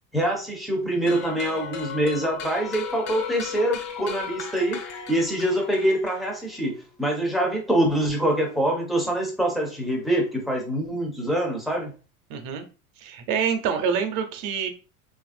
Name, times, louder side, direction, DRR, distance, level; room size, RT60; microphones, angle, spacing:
voice 1, 0.1-4.8 5.1-11.9, right 1 dB, ahead, 0 dB, 0.4 m, -25 dB
sound 1, 1.1-6.6, left 6 dB, 50° left, 0.7 m, -36 dB
voice 2, 12.3-12.7 13.0-14.7, right 7 dB, 50° right, 7 dB, 0.7 m, -26 dB
3.0 x 2.5 x 2.5 m, 0.34 s
supercardioid pair, 130°, 43 cm